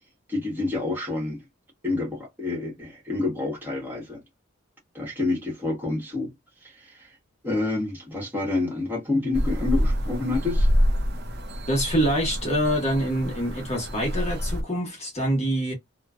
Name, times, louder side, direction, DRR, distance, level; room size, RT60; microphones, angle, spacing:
voice 1, 0.3-1.4 1.8-4.2 4.9-6.3 6.6-7.1 7.4-10.7, left 3 dB, 10° right, 1.3 m, -28 dB
sound 1, 9.3-14.6, equal, 55° right, 0.6 m, -26 dB
voice 2, 11.7-15.7, equal, 35° left, 1.1 m, -25 dB
3.0 x 2.3 x 2.3 m
head